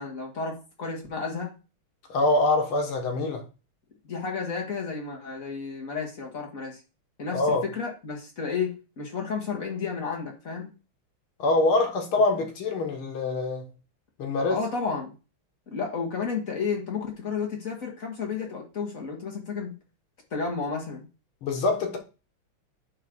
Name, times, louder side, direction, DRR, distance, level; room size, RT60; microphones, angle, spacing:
voice 1, 0.0-1.5 4.0-6.8 7.2-10.7 14.5-15.1 15.7-19.7 20.3-21.1, left 5 dB, 40° left, 2.2 m, -32 dB
voice 2, 2.1-3.4 7.3-7.7 11.4-13.7 14.2-14.6 21.4-22.0, left 2 dB, 85° left, 2.4 m, -24 dB
9.1 x 3.3 x 6.1 m
omnidirectional pair, 2.3 m